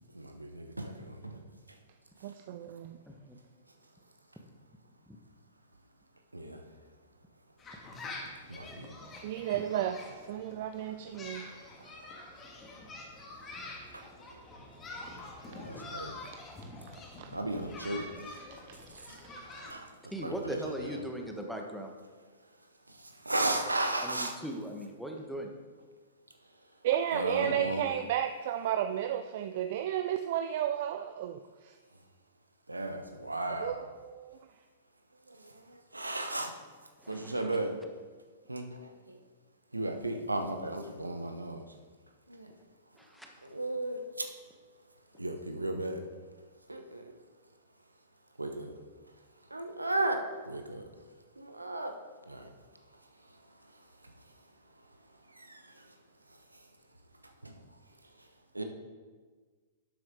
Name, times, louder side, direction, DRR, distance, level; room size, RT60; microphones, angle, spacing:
voice 1, 0.5-0.9 6.3-6.6 8.5-8.9 15.7-16.1 17.3-18.0 19.7-19.8 20.2-21.0 23.3-24.3 27.1-27.8 32.7-33.8 35.9-36.5 37.1-37.7 38.5-38.6 39.7-41.6 43.5-44.0 45.2-46.0 46.7-46.8 48.4-48.7 49.5-50.2 50.5-50.8 51.6-51.9 58.6-58.7, right 2 dB, 85° right, 6 dB, 0.9 m, -33 dB
voice 2, 2.2-3.0 9.2-10.0 10.3-11.5 16.3-16.4 17.2-17.3 18.7-19.1 26.8-31.7 33.5-34.4, right 10 dB, 50° right, 9 dB, 0.4 m, -33 dB
sound 1, 7.6-19.7, left 2 dB, 20° left, 1.9 m, -46 dB
voice 3, 20.1-21.9 24.0-25.5 37.0-37.5 43.0-43.3, right 1 dB, ahead, 2 dB, 1.3 m, -39 dB
11.0 x 7.7 x 3.7 m, 1.4 s
figure-of-eight pair, 105°, 0 cm